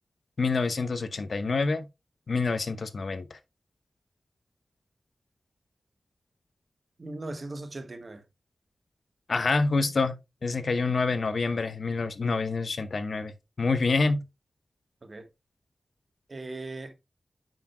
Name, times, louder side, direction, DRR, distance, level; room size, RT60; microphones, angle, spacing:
voice 1, 0.4-1.9 2.3-3.4 9.3-10.2 10.4-14.2, left 3 dB, 65° left, 0.8 m, -27 dB
voice 2, 7.0-8.2 15.0-15.3 16.3-16.9, right 2 dB, 45° right, 1.3 m, -38 dB
9.0 x 6.0 x 2.2 m
wide cardioid pair, 75°, 0 cm